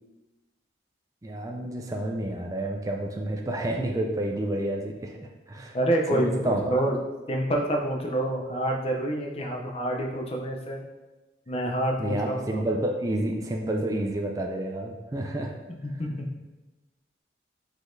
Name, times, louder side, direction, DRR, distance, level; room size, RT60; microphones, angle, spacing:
voice 1, 1.2-5.8 6.1-6.8 12.0-15.5, right 1 dB, 20° right, 1 dB, 0.4 m, -29 dB
voice 2, 5.7-7.0 7.3-10.8 11.5-12.6 15.8-16.3, right 1 dB, 30° left, 0 dB, 0.6 m, -27 dB
4.9 x 3.9 x 2.6 m, 1.1 s
head